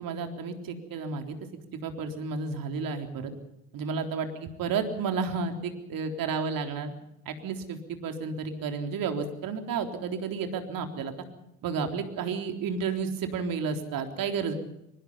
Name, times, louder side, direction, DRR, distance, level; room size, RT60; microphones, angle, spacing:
voice 1, 0.0-1.4 1.8-3.3 3.7-6.9 7.3-11.1 11.6-14.5, right 5 dB, 55° right, 5 dB, 3.8 m, -32 dB
23.5 x 21.0 x 5.7 m, 0.85 s
hypercardioid pair, 65°, 40 cm